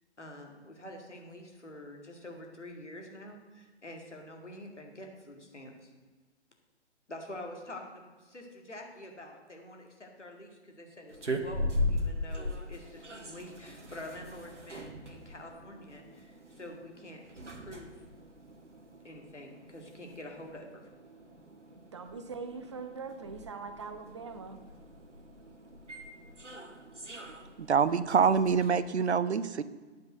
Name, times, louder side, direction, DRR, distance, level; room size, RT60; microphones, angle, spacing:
voice 1, 0.2-5.9 7.1-17.2 17.5-17.9 19.0-20.8, left 1 dB, 80° left, 1 dB, 2.3 m, -47 dB
sound 1, 11.1-28.7, left 1 dB, 85° right, 1.2 m, -40 dB
voice 2, 21.7-24.6, right 5 dB, 25° right, 8 dB, 0.5 m, -42 dB
voice 3, 27.7-29.6, right 6 dB, 70° right, 15 dB, 0.7 m, -25 dB
9.5 x 5.4 x 7.9 m, 1.3 s
figure-of-eight pair, 130°, 35 cm